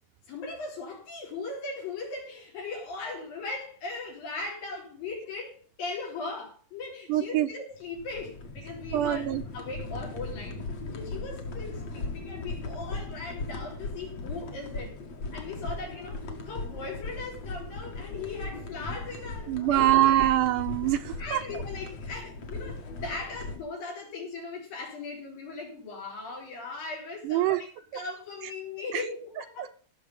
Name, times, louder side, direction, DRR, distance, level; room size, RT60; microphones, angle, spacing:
voice 1, 0.3-9.3 9.5-10.6 10.9-15.0 15.3-20.3 21.2-29.7, left 3 dB, 75° left, 5.8 m, -39 dB
voice 2, 7.1-7.5 8.9-9.4 19.5-21.4 27.3-27.6 27.9-28.0 28.9-29.0 29.6-29.7, right 13 dB, 75° right, 2.0 m, -24 dB
sound 1, 7.7-23.6, left 3 dB, 50° left, 3.1 m, -38 dB
16.0 x 7.1 x 5.4 m
omnidirectional pair, 4.0 m